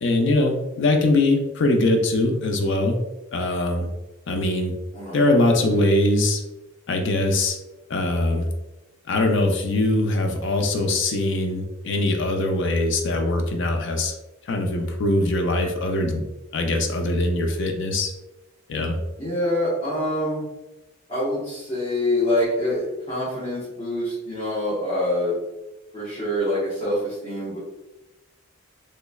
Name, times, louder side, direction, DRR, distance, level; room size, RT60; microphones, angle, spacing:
voice 1, 0.0-3.0 3.3-3.9 4.3-4.7 5.1-6.4 6.9-7.6 7.9-8.5 9.1-14.1 14.5-16.2 16.5-18.1 18.7-19.0, left 2 dB, 65° left, 3 dB, 0.5 m, -22 dB
voice 2, 4.9-5.3 5.6-5.9 19.2-20.4 21.1-25.4 25.9-27.6, left 1 dB, 35° left, -10 dB, 1.0 m, -25 dB
3.1 x 3.1 x 2.3 m, 1.0 s
head